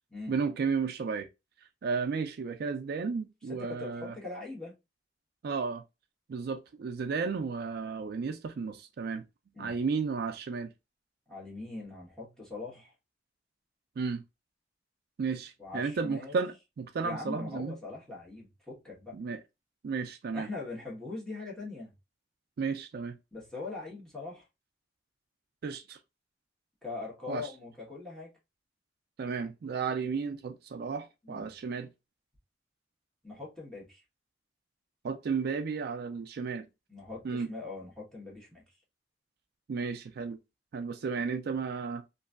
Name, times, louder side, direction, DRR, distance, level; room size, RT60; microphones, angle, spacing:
voice 1, 0.3-1.3 1.8-4.2 5.4-5.8 6.3-9.3 9.6-10.7 14.0-14.2 15.2-17.8 19.1-19.4 19.8-20.5 22.6-23.2 25.6-26.0 27.3-27.5 29.2-31.9 35.0-36.7 37.2-37.5 39.7-40.4 40.7-42.0, right 5 dB, 60° right, 0.3 m, -33 dB
voice 2, 3.5-4.7 9.5-9.7 11.3-12.9 15.6-16.4 17.0-19.2 20.3-21.9 23.3-24.4 26.8-28.3 31.2-31.5 33.2-34.0 36.9-38.7, left 3 dB, 5° left, 1.3 m, -41 dB
3.0 x 2.6 x 2.3 m
head